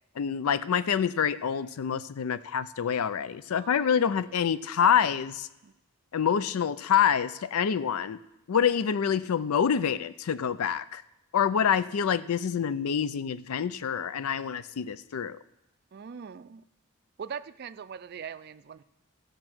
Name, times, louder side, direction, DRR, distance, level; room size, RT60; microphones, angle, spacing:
voice 1, 0.2-5.5 6.1-8.2 8.5-11.0 11.3-15.4, left 8 dB, 85° left, 16 dB, 0.4 m, -26 dB
voice 2, 3.6-4.1 5.6-5.7 15.9-16.6 17.2-18.8, right 7 dB, 45° right, 15 dB, 0.4 m, -41 dB
13.5 x 6.6 x 6.1 m, 0.93 s
head